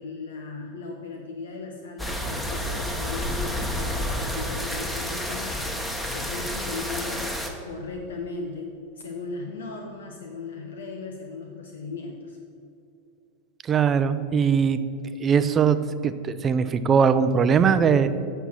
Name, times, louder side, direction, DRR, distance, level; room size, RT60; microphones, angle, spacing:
voice 1, 0.0-7.3 7.6-12.4, left 3 dB, 75° left, 2 dB, 0.8 m, -37 dB
sound 1, 2.0-7.5, left 1 dB, 5° left, 1.2 m, -30 dB
voice 2, 13.7-14.8 15.2-18.1, right 6 dB, 30° right, 12 dB, 0.5 m, -21 dB
8.2 x 6.8 x 6.1 m, 2.5 s
figure-of-eight pair, 90°, 0 cm